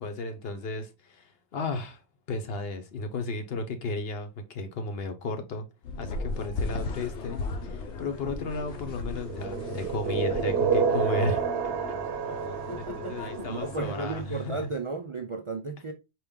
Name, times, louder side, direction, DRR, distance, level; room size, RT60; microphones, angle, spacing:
voice 1, 0.0-2.0 2.3-5.7 6.0-11.4 12.8-14.6, left 2 dB, 65° left, 1.0 m, -34 dB
sound 1, 5.8-14.1, left 3 dB, 90° left, 1.1 m, -37 dB
sound 2, 9.2-14.1, right 6 dB, 70° right, 1.0 m, -29 dB
voice 2, 12.7-15.9, right 3 dB, 45° right, 0.4 m, -34 dB
4.5 x 3.0 x 3.5 m
omnidirectional pair, 1.1 m